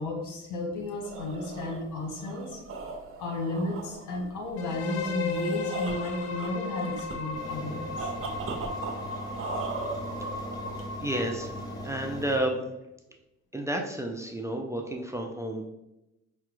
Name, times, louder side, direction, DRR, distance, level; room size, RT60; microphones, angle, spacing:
voice 1, 0.0-2.6 3.2-8.1, left 2 dB, 80° left, 0 dB, 1.2 m, -33 dB
sound 1, 0.8-11.1, right 4 dB, 45° right, 0.6 m, -39 dB
sound 2, 4.6-12.4, left 4 dB, 55° left, 0.5 m, -36 dB
sound 3, 7.3-12.4, equal, 15° left, 0.8 m, -40 dB
voice 2, 11.0-11.5 11.8-12.6 13.5-15.7, right 1 dB, 10° right, 2 dB, 0.4 m, -31 dB
4.8 x 2.2 x 3.0 m, 0.92 s
cardioid pair, 90°, 30 cm